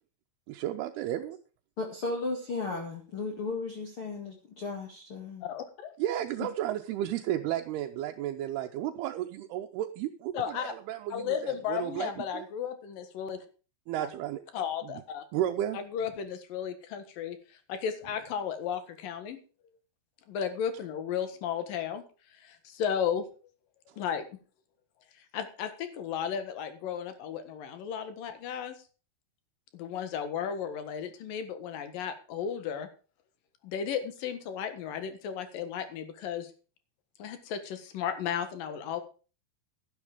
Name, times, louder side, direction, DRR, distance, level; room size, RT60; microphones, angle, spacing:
voice 1, 0.5-1.4 6.0-12.5 13.9-14.4 14.8-14.9 15.3-15.8, right 12 dB, 80° right, 4 dB, 2.7 m, -33 dB
voice 2, 1.8-5.5, left 3 dB, 40° left, 1 dB, 2.2 m, -35 dB
voice 3, 5.4-5.9 10.3-10.7 11.1-13.4 14.0-14.1 14.5-15.2 15.7-17.4 17.7-19.4 20.3-22.0 22.4-23.2 24.0-24.3 25.3-28.8 29.7-32.9 33.6-36.5 37.2-39.0, left 8 dB, 65° left, 9 dB, 3.1 m, -34 dB
12.0 x 11.0 x 5.0 m, 0.36 s
omnidirectional pair, 4.6 m